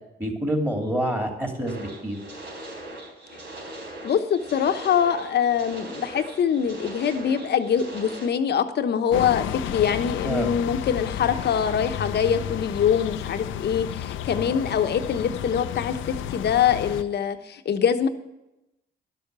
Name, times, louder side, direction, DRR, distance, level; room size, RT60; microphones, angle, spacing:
voice 1, 0.2-2.2 10.2-10.5, right 1 dB, 10° right, 2 dB, 2.7 m, -27 dB
sound 1, 1.7-8.3, right 1 dB, 65° right, 3.9 m, -40 dB
voice 2, 4.0-18.1, left 8 dB, 60° left, 8 dB, 1.0 m, -24 dB
sound 2, 9.1-17.0, left 10 dB, 85° left, 0.6 m, -32 dB
11.5 x 6.8 x 6.8 m, 0.93 s
cardioid pair, 90°, 20 cm